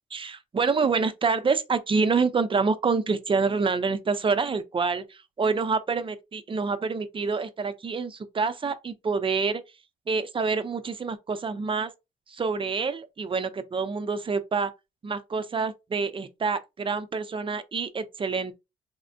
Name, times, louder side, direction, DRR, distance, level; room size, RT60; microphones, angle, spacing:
voice 1, 0.1-9.6 10.1-11.9 12.3-14.7 15.0-18.6, right 4 dB, 25° right, 0.5 m, -27 dB
3.5 x 2.1 x 2.5 m
cardioid pair, 90°, 20 cm